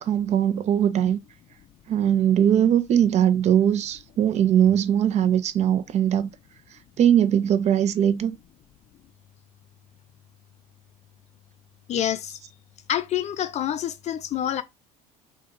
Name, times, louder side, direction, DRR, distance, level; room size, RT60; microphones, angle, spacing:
voice 1, 0.0-1.2 1.9-6.3 7.0-8.4, right 9 dB, 35° right, 0.4 m, -20 dB
voice 2, 11.9-12.4 12.9-14.6, left 11 dB, 35° left, 0.4 m, -27 dB
2.3 x 2.3 x 3.0 m
hypercardioid pair, 75°, 19 cm